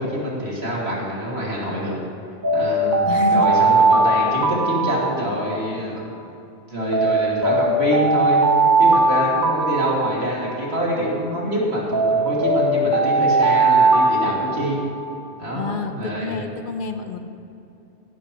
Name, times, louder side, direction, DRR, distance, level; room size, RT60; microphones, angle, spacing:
voice 1, 0.0-2.0 2.5-6.0 6.7-8.4 8.8-14.8 15.4-16.4, equal, 65° right, -4 dB, 2.5 m, -25 dB
Alarm, 2.4-5.8 6.9-10.8 11.9-15.2, right 2 dB, 30° right, 0.4 m, -19 dB
voice 2, 3.1-3.7 15.5-17.2, left 4 dB, 50° left, 6 dB, 0.8 m, -28 dB
15.5 x 12.0 x 3.0 m, 2.7 s
omnidirectional pair, 1.1 m